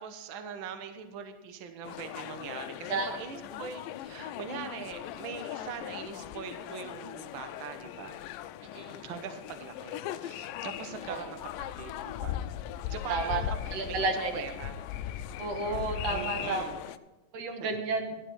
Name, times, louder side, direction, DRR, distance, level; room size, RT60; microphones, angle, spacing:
voice 1, 0.0-8.2 9.0-11.4 11.8-12.4 12.9-14.7 16.1-16.8 17.6-17.8, right 7 dB, 85° right, 7 dB, 1.1 m, -42 dB
sound 1, 1.8-17.0, left 12 dB, 85° left, 2.2 m, -39 dB
voice 2, 13.1-13.4 13.7-14.4 15.4-16.6 17.3-18.1, right 3 dB, 55° right, 4 dB, 2.3 m, -31 dB
12.0 x 11.5 x 4.7 m, 1.0 s
omnidirectional pair, 3.8 m